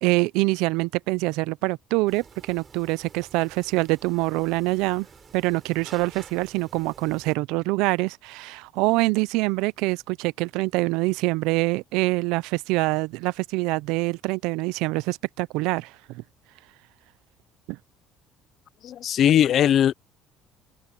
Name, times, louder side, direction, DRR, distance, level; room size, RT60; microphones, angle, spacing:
voice 1, 0.0-5.1 5.3-16.2 17.7-17.8, right 23 dB, 85° right, 0.4 m, -25 dB
sound 1, 2.1-7.4, right 6 dB, 25° right, 4.6 m, -49 dB
voice 2, 18.8-19.9, left 10 dB, 40° left, 0.4 m, -19 dB
cardioid pair, 170°, 0 cm